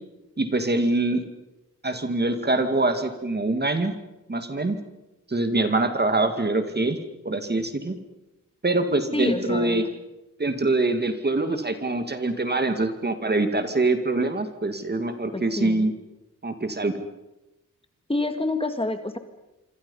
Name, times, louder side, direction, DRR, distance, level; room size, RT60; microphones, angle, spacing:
voice 1, 0.4-1.2 1.8-3.9 4.3-4.8 5.3-7.0 7.2-8.0 8.6-9.9 10.4-15.9 16.4-16.9, right 2 dB, 30° right, 7 dB, 2.3 m, -24 dB
voice 2, 9.1-9.8 15.3-15.9 18.1-19.2, left 2 dB, 15° left, 7 dB, 2.1 m, -27 dB
27.0 x 26.0 x 5.6 m, 0.97 s
wide cardioid pair, 115°, 33 cm